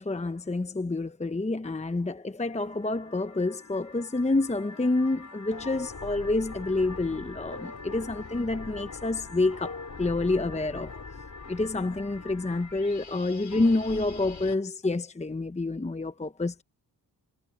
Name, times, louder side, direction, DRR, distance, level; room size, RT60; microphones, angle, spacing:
voice 1, 0.0-10.9 11.5-16.6, left 2 dB, 15° left, 1.0 m, -28 dB
sound 1, 2.5-14.6, left 4 dB, 40° left, 5.0 m, -43 dB
cardioid pair, 65°, 43 cm